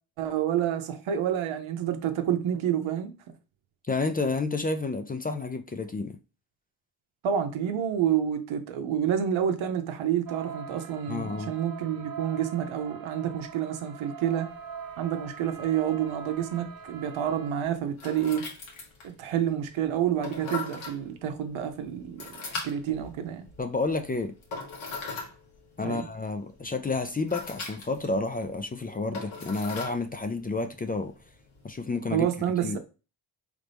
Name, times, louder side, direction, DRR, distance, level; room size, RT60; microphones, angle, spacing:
voice 1, 0.2-3.1 7.2-14.5 15.0-18.5 19.0-22.4 22.6-23.5 25.8-26.1 32.1-32.8, right 9 dB, 85° right, 0.8 m, -28 dB
voice 2, 3.9-6.2 11.1-11.5 23.6-24.3 25.8-31.1 31.6-32.3 32.6-32.8, left 3 dB, 20° left, 0.4 m, -30 dB
sound 1, 10.3-17.5, right 6 dB, 45° right, 0.6 m, -42 dB
sound 2, 14.5-32.0, left 4 dB, 85° left, 1.4 m, -42 dB
4.0 x 3.3 x 3.3 m
cardioid pair, 70°, 47 cm